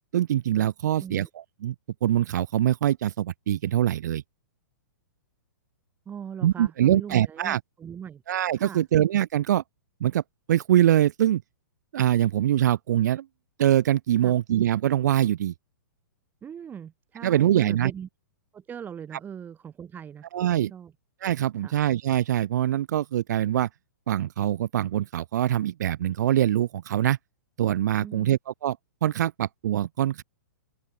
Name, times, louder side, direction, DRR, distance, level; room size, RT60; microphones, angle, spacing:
voice 1, 0.1-1.3 1.6-1.7 2.0-4.2 6.4-7.6 8.3-9.6 10.0-10.2 10.5-11.4 11.9-13.3 13.6-15.5 17.2-17.9 20.3-20.7 21.2-23.7 24.1-27.2 27.6-28.8 29.0-30.2, right 11 dB, 65° right, 0.5 m, -23 dB
voice 2, 1.0-1.3 6.1-8.2 8.5-8.8 14.2-14.3 16.4-18.1 18.5-20.3 20.6-20.9 21.6-21.8 28.0-28.3, right 8 dB, 20° right, 2.8 m, -40 dB
open air
hypercardioid pair, 125°, 10 cm